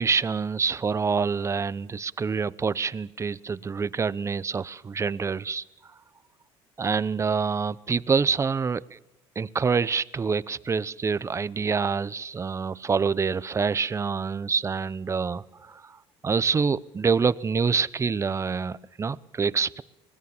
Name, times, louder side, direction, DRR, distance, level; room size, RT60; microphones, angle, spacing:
voice 1, 0.0-5.6 6.8-9.0 9.4-15.8 16.2-19.8, right 5 dB, 25° right, 18 dB, 0.8 m, -26 dB
24.5 x 20.5 x 7.2 m, 0.94 s
cardioid pair, 105°, 12 cm